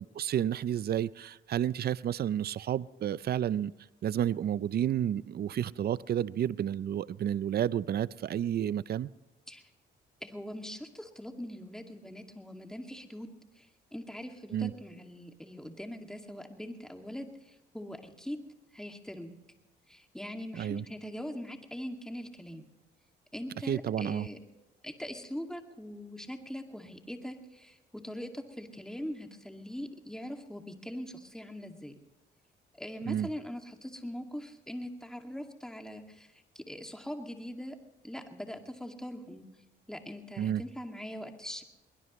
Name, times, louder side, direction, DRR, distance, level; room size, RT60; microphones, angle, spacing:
voice 1, 0.2-3.7 4.0-9.1 14.5-14.7 20.5-20.8 23.7-24.3 33.1-33.3 40.4-40.6, right 10 dB, 50° right, 18 dB, 0.5 m, -31 dB
voice 2, 10.2-13.3 13.6-18.4 18.7-19.4 19.9-22.7 23.3-24.4 24.8-31.9 32.7-37.8 38.0-39.5 39.9-41.6, equal, 5° left, 4 dB, 2.3 m, -42 dB
22.5 x 20.5 x 3.2 m, 1.0 s
cardioid pair, 90°, 20 cm